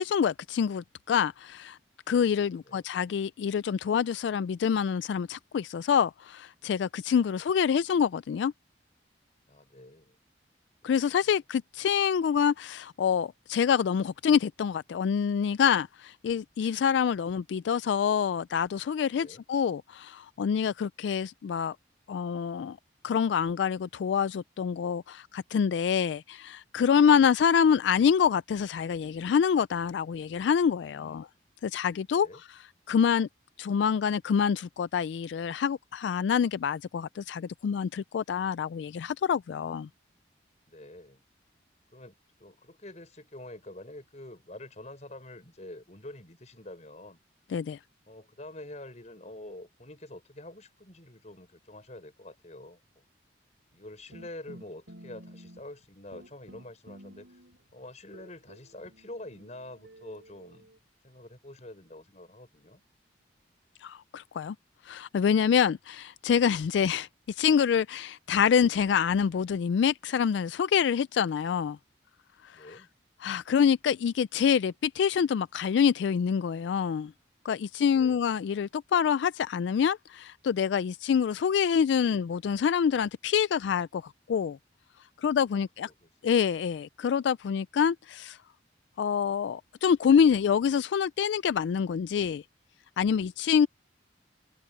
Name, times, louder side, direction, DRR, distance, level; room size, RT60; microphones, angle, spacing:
voice 1, 0.0-1.8 2.1-8.5 10.8-21.8 22.1-22.8 23.0-31.3 31.6-32.5 32.9-33.3 33.6-39.9 47.5-47.8 63.8-64.6 64.8-71.8 72.4-72.8 73.2-77.1 77.4-84.6 85.2-85.9 86.2-88.4 89.0-92.4 93.0-93.7, left 7 dB, 75° left, 0.3 m, -26 dB
voice 2, 2.5-2.8 7.1-7.4 9.5-10.2 10.8-10.9 19.1-19.4 27.0-27.3 30.9-31.5 32.1-32.4 40.7-41.2 41.9-42.1 42.4-47.2 48.1-52.8 53.7-57.3 57.7-60.7 61.0-62.8 72.5-72.9 77.9-78.2 85.5-86.1 93.5-93.6, left 1 dB, 40° left, 5.1 m, -47 dB
sound 1, 54.1-55.9 56.1-57.7 58.1-60.8, equal, 85° right, 7.5 m, -52 dB
head